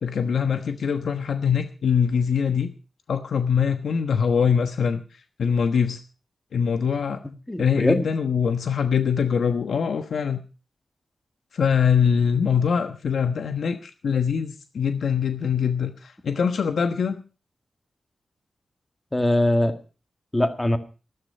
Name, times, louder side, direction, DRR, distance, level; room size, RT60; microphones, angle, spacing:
voice 1, 0.0-2.7 3.1-6.0 6.5-7.2 7.6-10.4 11.5-17.2, left 7 dB, 85° left, 7 dB, 1.2 m, -23 dB
voice 2, 7.2-8.1 19.1-19.7 20.3-20.8, left 1 dB, 15° left, 8 dB, 1.8 m, -22 dB
14.0 x 13.5 x 5.5 m, 0.36 s
wide cardioid pair, 135°, 0 cm